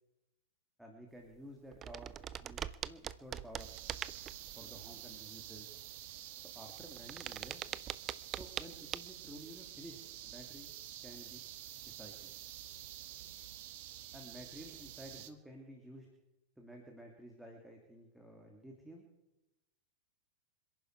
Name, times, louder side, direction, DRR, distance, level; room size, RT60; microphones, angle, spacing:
voice 1, 0.8-2.2 2.4-3.7 4.6-5.7 6.5-7.6 8.4-10.0 10.2-10.7 11.0-11.4 11.9-12.3 14.1-16.1 16.6-19.1, equal, 5° right, 1 dB, 2.8 m, -52 dB
sound 1, 1.3-1.4 1.7-4.5 6.7-8.7 8.9-9.0, right 10 dB, 30° right, 0.6 m, -42 dB
sound 2, 3.6-15.3, right 12 dB, 50° right, 1.3 m, -49 dB
26.5 x 11.0 x 4.8 m, 0.96 s
figure-of-eight pair, 90°, 0 cm